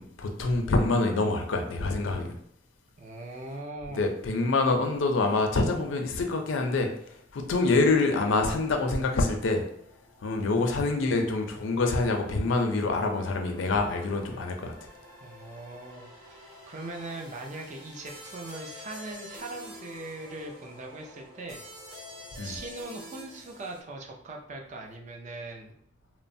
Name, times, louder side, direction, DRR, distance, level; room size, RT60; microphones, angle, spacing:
voice 1, 0.0-2.4 3.9-6.9 7.3-9.6 10.2-14.7 22.4-22.5, left 3 dB, 75° left, 4 dB, 0.4 m, -26 dB
voice 2, 3.0-4.1 15.2-21.6 22.4-25.7, right 2 dB, 40° right, 1 dB, 0.4 m, -40 dB
sound 1, 9.4-23.8, equal, 80° right, 1.3 m, -49 dB
3.0 x 2.0 x 2.6 m, 0.69 s
head